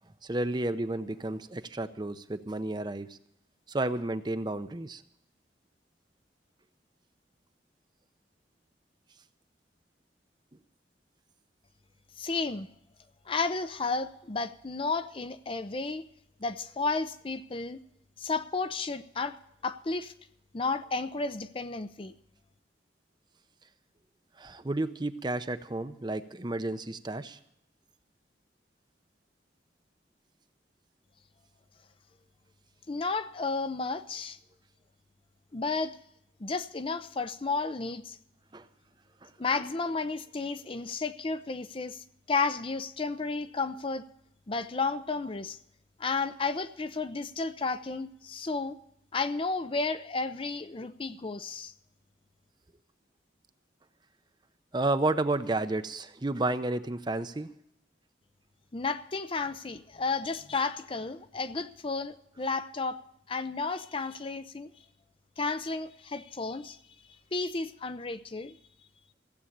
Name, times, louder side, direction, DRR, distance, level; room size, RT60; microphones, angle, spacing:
voice 1, 0.2-3.2 3.7-5.0 24.4-27.4 38.5-38.7 39.2-39.3 50.8-50.9 54.7-57.5, right 2 dB, 25° right, 11 dB, 0.6 m, -31 dB
voice 2, 12.2-12.7 13.3-16.0 16.4-17.8 18.2-19.4 19.6-20.1 20.5-22.1 32.9-34.4 35.5-36.0 36.4-38.2 39.4-44.0 44.5-45.6 46.0-48.8 49.1-51.7 58.7-63.0 63.3-64.7 65.4-66.8 67.3-68.6, left 4 dB, 30° left, 11 dB, 0.6 m, -32 dB
15.5 x 8.0 x 8.6 m, 0.75 s
head